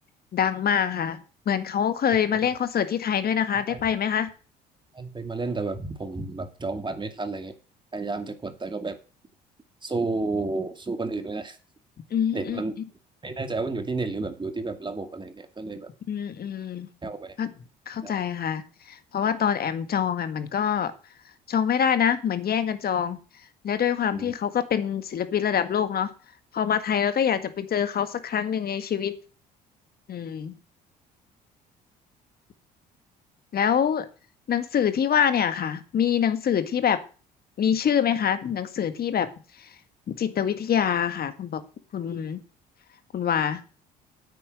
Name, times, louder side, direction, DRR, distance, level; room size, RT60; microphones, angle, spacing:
voice 1, 0.3-1.2 1.4-4.3 12.1-12.6 16.1-16.9 17.4-17.5 17.9-20.9 21.5-23.2 23.6-26.1 26.5-29.1 30.1-30.6 33.5-34.1 34.5-37.0 37.6-39.3 40.1-41.6 41.9-42.4 43.1-43.6, left 8 dB, 45° left, 10 dB, 1.8 m, -25 dB
voice 2, 4.9-7.5 7.9-9.0 9.8-11.6 12.3-12.7 13.2-15.9 17.0-17.4 18.0-18.1 24.1-24.3, right 3 dB, 20° right, 7 dB, 2.4 m, -31 dB
9.4 x 8.6 x 6.7 m, 0.37 s
hypercardioid pair, 55°, 21 cm